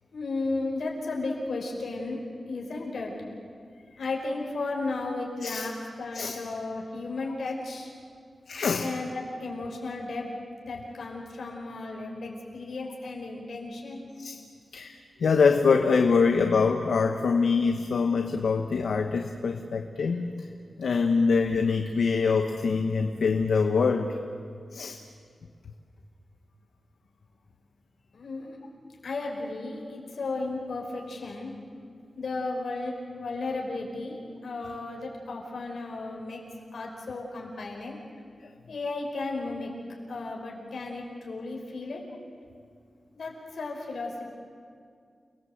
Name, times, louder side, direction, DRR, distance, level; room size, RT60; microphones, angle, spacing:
voice 1, 0.1-2.2 2.5-3.1 4.0-7.9 8.8-10.3 10.6-14.0 28.1-28.6 29.0-31.5 32.2-36.4 36.7-38.0 38.7-39.7 40.1-42.0 43.1-44.2, left 3 dB, 65° left, -1 dB, 5.1 m, -34 dB
voice 2, 8.5-8.9 14.2-14.4 14.7-20.5 20.8-24.1 24.7-25.0, left 5 dB, 80° left, 5 dB, 1.2 m, -24 dB
29.5 x 19.5 x 8.0 m, 2.2 s
wide cardioid pair, 165°, 0 cm